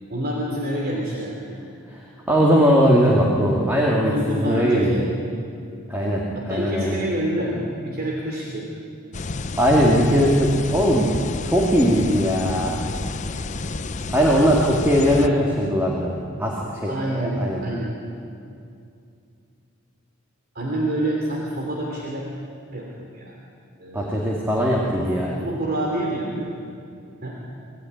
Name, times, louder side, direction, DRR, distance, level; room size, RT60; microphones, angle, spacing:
voice 1, 0.1-1.5 3.9-5.1 6.3-8.7 15.0-15.4 16.8-17.9 20.5-22.2 22.7-23.3 23.8-24.3 25.0-25.1 25.4-26.6 27.2-27.4, right 1 dB, 50° right, -2 dB, 3.1 m, -27 dB
voice 2, 1.9-4.9 5.9-7.0 9.6-11.1 11.4-12.8 14.1-16.1 16.4-17.6 23.9-25.4, equal, 10° right, -3 dB, 2.4 m, -20 dB
sound 1, 9.1-15.3, left 3 dB, 35° left, 0.7 m, -30 dB
25.5 x 16.5 x 9.6 m, 2.5 s
head